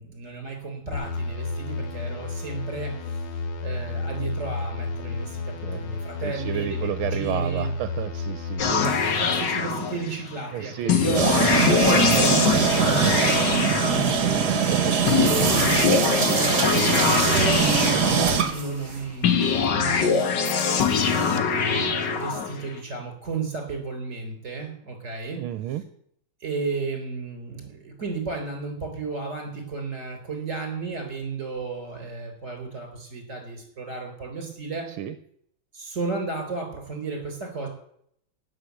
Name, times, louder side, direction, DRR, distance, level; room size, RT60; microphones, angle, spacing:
voice 1, 0.0-3.2 3.6-7.7 8.7-14.2 14.5-14.7 15.1-17.7 18.5-20.4 21.0-25.4 26.4-34.9 35.7-37.7, right 4 dB, 35° right, 4 dB, 4.4 m, -33 dB
sound 1, 0.9-8.6, left 3 dB, 80° left, 2.4 m, -31 dB
voice 2, 6.2-8.6 10.5-11.2 14.6-15.0 25.4-25.8 34.9-35.1, right 11 dB, 80° right, 11 dB, 1.6 m, -31 dB
sound 2, 8.6-10.3 10.9-14.5 15.1-18.7 19.2-22.7, left 6 dB, 55° left, 1.9 m, -23 dB
sound 3, 11.1-19.0, right 6 dB, 50° right, 2.0 m, -22 dB
16.5 x 6.6 x 8.5 m, 0.70 s
omnidirectional pair, 2.3 m